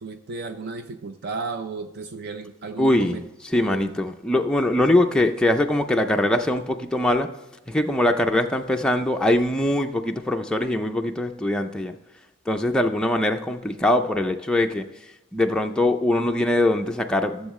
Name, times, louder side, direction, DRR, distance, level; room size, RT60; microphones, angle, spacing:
voice 1, 0.0-3.2 3.6-3.9, right 4 dB, 50° right, 7 dB, 0.5 m, -34 dB
voice 2, 2.8-3.2 3.5-7.3 7.7-11.9 12.5-14.9 15.3-17.5, left 1 dB, 5° left, 3 dB, 0.4 m, -22 dB
13.5 x 7.2 x 3.1 m, 0.98 s
head